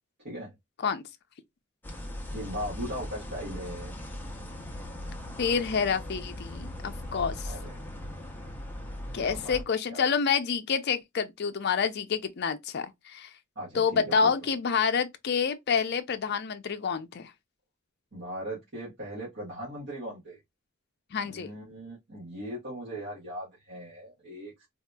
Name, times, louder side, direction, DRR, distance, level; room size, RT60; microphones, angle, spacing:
sound 1, 1.8-9.6, left 1 dB, 10° left, 0.6 m, -39 dB
voice 1, 2.3-3.9 7.4-7.9 9.2-9.6 9.9-10.1 13.5-14.5 18.1-20.4 21.2-24.7, equal, 55° right, 1.6 m, -39 dB
voice 2, 5.4-7.5 9.1-13.3 13.7-17.3 21.1-21.5, left 6 dB, 55° left, 0.5 m, -28 dB
4.0 x 2.7 x 2.2 m
head